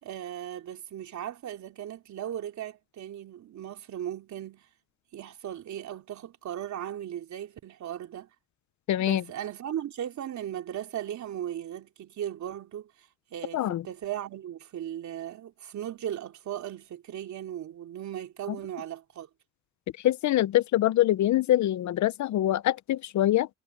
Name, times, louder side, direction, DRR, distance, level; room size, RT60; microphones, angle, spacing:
voice 1, 0.0-4.7 5.1-8.3 9.0-12.9 13.3-19.3, right 10 dB, 70° right, 3.5 m, -37 dB
voice 2, 8.9-9.2 13.5-13.8 20.0-23.5, left 13 dB, 70° left, 0.8 m, -24 dB
cardioid pair, 90°, 30 cm